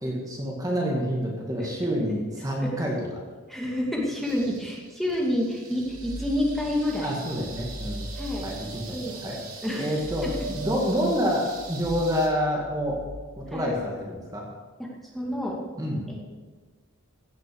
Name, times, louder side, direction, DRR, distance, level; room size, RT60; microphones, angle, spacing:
voice 1, 0.0-3.2 7.0-8.1 8.4-9.4 9.8-13.0 13.4-14.5 15.8-16.0, equal, 15° right, -2 dB, 2.0 m, -28 dB
voice 2, 3.5-7.2 8.1-8.5 8.9-9.2 9.6-9.9 10.2-10.4 13.5-13.7 14.8-15.6 16.1-16.3, left 1 dB, ahead, -3 dB, 2.2 m, -29 dB
sound 1, 4.2-12.3, right 4 dB, 80° right, 3.0 m, -44 dB
sound 2, 5.8-7.0 7.3-13.8, right 1 dB, 45° right, 4.2 m, -39 dB
16.0 x 8.2 x 7.0 m, 1.4 s
head